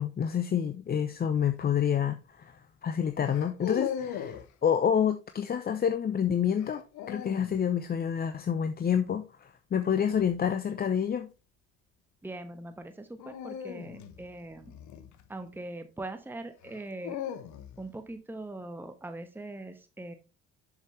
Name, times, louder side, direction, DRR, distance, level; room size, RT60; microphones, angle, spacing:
voice 1, 0.0-6.8 7.1-11.3, left 8 dB, 25° left, 0.7 m, -28 dB
sound 1, 1.4-1.7 3.2-4.5 6.6-7.6 10.0-10.4 13.2-15.6 16.6-17.9, left 9 dB, 50° left, 1.1 m, -39 dB
voice 2, 12.2-14.7 15.3-17.2 17.8-20.1, right 2 dB, 5° right, 1.1 m, -41 dB
7.1 x 6.6 x 3.2 m
figure-of-eight pair, 55°, 36 cm